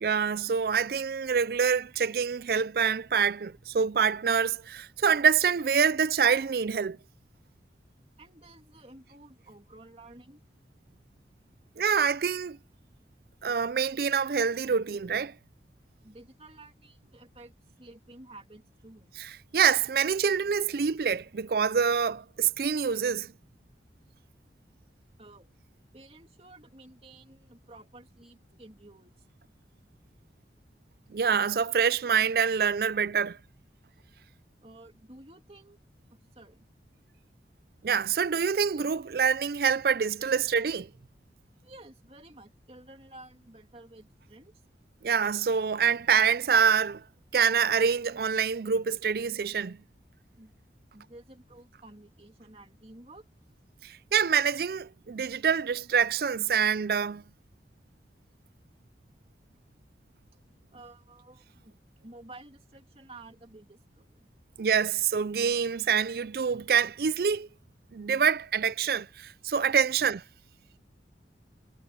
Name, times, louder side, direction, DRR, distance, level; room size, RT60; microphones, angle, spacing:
voice 1, 0.0-7.0 11.8-12.6 13.4-15.3 19.5-23.3 31.1-33.4 37.8-40.9 45.0-47.0 47.3-49.8 53.8-57.2 64.6-67.5 67.9-70.2, right 6 dB, 55° right, 0.4 m, -26 dB
voice 2, 8.2-10.4 16.0-19.1 25.2-25.5 25.9-29.3 34.6-35.8 36.1-36.7 41.6-44.6 50.3-50.5 50.9-53.3 60.7-61.7 62.0-64.3, right 2 dB, 35° right, 2.8 m, -52 dB
head